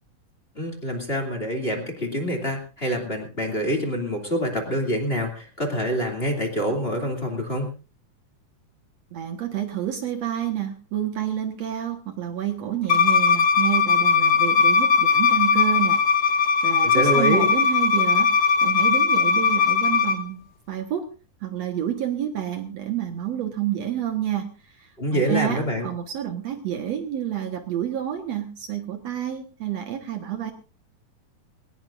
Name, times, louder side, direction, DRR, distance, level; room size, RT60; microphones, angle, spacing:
voice 1, 0.5-7.7 16.8-17.5 25.0-25.9, equal, 20° left, 2 dB, 2.6 m, -26 dB
voice 2, 9.1-18.3 18.6-20.4 20.7-21.1 21.4-30.5, right 11 dB, 60° right, 6 dB, 2.3 m, -29 dB
Bowed string instrument, 12.9-20.2, left 5 dB, 50° left, 1.4 m, -19 dB
21.0 x 19.0 x 2.6 m, 0.35 s
omnidirectional pair, 3.7 m